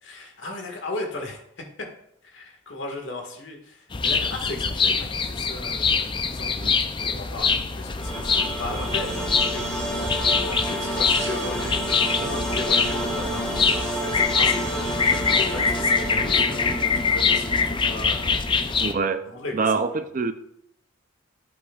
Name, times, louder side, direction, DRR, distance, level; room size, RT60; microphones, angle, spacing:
voice 1, 0.0-1.6 2.3-9.1 9.5-16.6 16.9-18.9 19.2-19.8, left 2 dB, 60° left, 1 dB, 1.7 m, -36 dB
sound 1, 3.9-18.9, left 5 dB, 25° left, 0.4 m, -24 dB
sound 2, 8.0-19.0, right 1 dB, 5° left, 1.1 m, -31 dB
sound 3, 8.1-14.0, right 2 dB, 65° right, 1.5 m, -40 dB
voice 2, 18.8-19.2 19.5-20.3, right 4 dB, 40° right, 10 dB, 0.5 m, -25 dB
11.5 x 7.8 x 2.4 m, 0.73 s
head